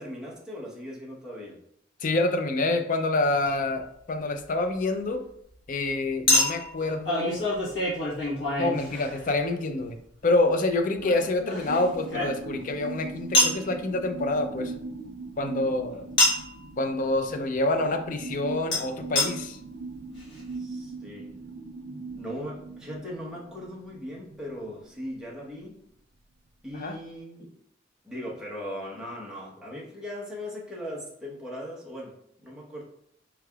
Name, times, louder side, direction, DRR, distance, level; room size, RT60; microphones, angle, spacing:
voice 1, 0.0-1.6 15.8-16.1 20.5-21.4 21.9-25.8 26.6-27.6 28.0-32.8, equal, 5° right, -5 dB, 1.0 m, -39 dB
voice 2, 2.0-5.2 5.7-7.4 8.6-10.0 10.2-14.7 15.4-16.0 16.8-19.6 26.7-27.0, left 2 dB, 40° left, 7 dB, 0.4 m, -27 dB
Chink clink, 3.5-3.6 6.3-9.5 11.0-12.7 13.3-13.6 16.2-16.6 18.7-18.8 19.2-19.3 19.9-20.0 20.2-20.3, left 1 dB, 70° left, 1.2 m, -26 dB
sound 1, 11.6-24.7 25.0-25.1, right 3 dB, 55° right, 0.4 m, -40 dB
4.6 x 3.2 x 2.3 m, 0.72 s
head